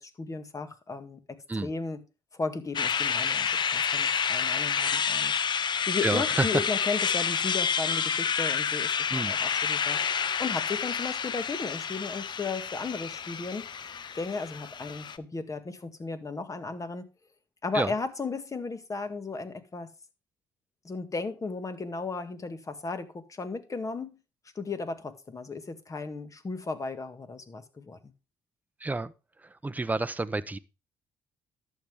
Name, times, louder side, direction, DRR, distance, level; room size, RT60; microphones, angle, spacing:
voice 1, 0.0-2.0 2.3-5.3 5.9-10.0 10.4-13.7 14.1-17.1 17.6-19.9 20.8-24.2 24.6-28.1, left 4 dB, 35° left, 1.9 m, -35 dB
sound 1, 2.7-15.2, left 7 dB, 50° left, 0.8 m, -29 dB
voice 2, 6.0-6.6 9.1-9.3 17.7-17.9 28.8-29.1 29.4-30.6, right 2 dB, 15° right, 0.8 m, -29 dB
11.5 x 7.8 x 3.5 m
supercardioid pair, 65°, 10 cm